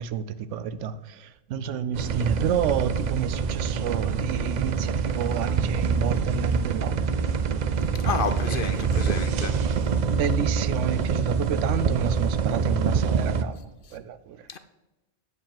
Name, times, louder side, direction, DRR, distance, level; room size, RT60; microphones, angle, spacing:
voice 1, 0.0-7.0 8.5-8.8 10.1-13.6 13.9-14.5, right 7 dB, 80° right, 0.9 m, -30 dB
sound 1, 1.9-13.4, right 6 dB, 60° right, 0.4 m, -25 dB
voice 2, 8.0-9.5 13.9-14.0 14.5-14.6, left 6 dB, 60° left, 0.6 m, -30 dB
9.4 x 4.8 x 7.5 m
omnidirectional pair, 1.2 m